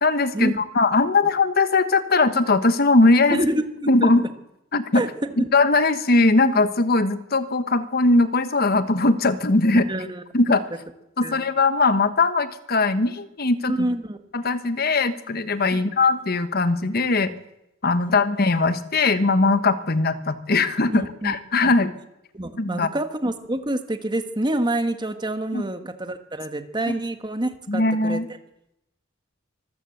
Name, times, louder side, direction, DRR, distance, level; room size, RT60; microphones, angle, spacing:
voice 1, 0.0-3.4 3.9-4.3 4.7-5.0 5.4-9.9 10.3-10.6 11.2-13.9 14.3-17.3 17.8-21.9 22.6-22.9 25.5-25.6 26.9-27.0 27.7-28.3, left 3 dB, 50° left, 12 dB, 1.2 m, -20 dB
voice 2, 3.3-4.1 4.9-5.1 5.4-5.5 9.9-10.2 11.2-11.4 13.7-14.2 15.7-15.8 18.0-18.1 20.9-21.4 21.6-21.7 22.3-28.2, right 1 dB, 20° right, 8 dB, 1.5 m, -27 dB
25.0 x 14.0 x 7.9 m, 0.88 s
head